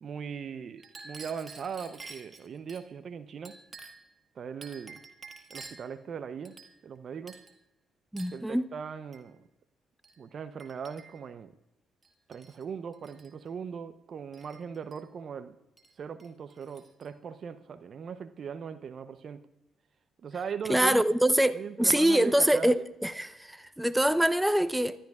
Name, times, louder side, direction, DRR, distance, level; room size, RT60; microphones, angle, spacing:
voice 1, 0.0-3.5 4.3-5.0 5.5-6.5 6.8-7.4 8.3-9.4 10.2-11.5 12.3-15.6 16.0-19.4 20.2-21.2 21.5-22.7, right 6 dB, 55° right, 0.8 m, -39 dB
Chink clink, 0.8-2.8 3.4-4.1 4.6-5.9 6.4-7.0 7.3-7.6 8.2-8.4 9.1-9.3 10.0-10.2 10.6-11.3 12.0-12.6 12.9-13.3 14.3-15.0 15.8-15.9 16.2-17.1, right 4 dB, 35° right, 1.8 m, -49 dB
voice 2, 8.1-8.7 20.7-25.0, right 1 dB, 5° right, 0.8 m, -24 dB
25.5 x 13.0 x 2.4 m
hypercardioid pair, 45°, 0 cm